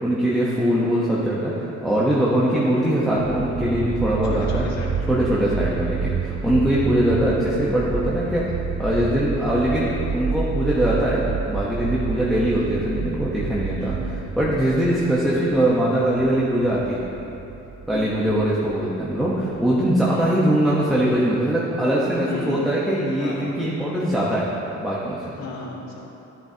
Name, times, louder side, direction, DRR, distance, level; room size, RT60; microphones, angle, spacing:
voice 1, 0.0-4.7 5.1-8.5 8.8-13.9 14.4-17.0 17.9-24.4 24.8-25.3, right 1 dB, ahead, -7 dB, 1.0 m, -22 dB
sound 1, 3.2-20.2, right 6 dB, 30° right, 0.4 m, -30 dB
voice 2, 4.2-5.1 5.7-5.9 7.1-7.2 12.4-12.7 13.8-14.0 17.9-18.3 20.1-20.4 22.2-22.6 23.2-23.5 25.4-26.0, left 2 dB, 65° left, -3 dB, 2.1 m, -35 dB
14.0 x 11.0 x 2.8 m, 3.0 s
cardioid pair, 170°, 30 cm